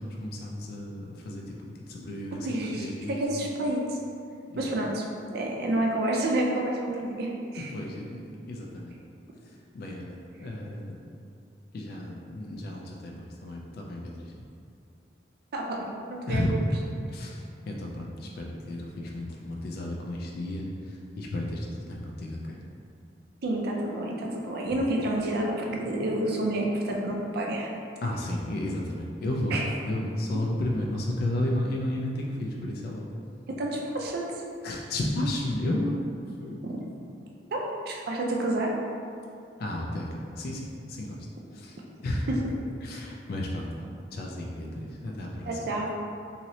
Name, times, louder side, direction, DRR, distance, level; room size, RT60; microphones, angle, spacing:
voice 1, 0.0-1.6 1.9-3.2 4.5-4.7 7.6-8.9 9.7-11.0 11.7-14.3 16.3-16.7 17.1-22.6 28.0-33.1 34.6-36.0 36.4-36.6 39.6-40.6 40.9-41.2 41.5-41.8 42.0-42.3 42.8-45.5, left 1 dB, 60° left, -1 dB, 0.3 m, -32 dB
voice 2, 2.4-4.0 4.6-5.0 5.3-7.7 15.5-16.4 23.4-27.7 29.5-29.6 33.5-34.2 36.6-36.7 37.5-38.7 42.3-42.4 42.9-43.1 45.5-45.9, right 1 dB, 60° right, -1 dB, 0.5 m, -29 dB
3.0 x 2.7 x 2.7 m, 2.4 s
head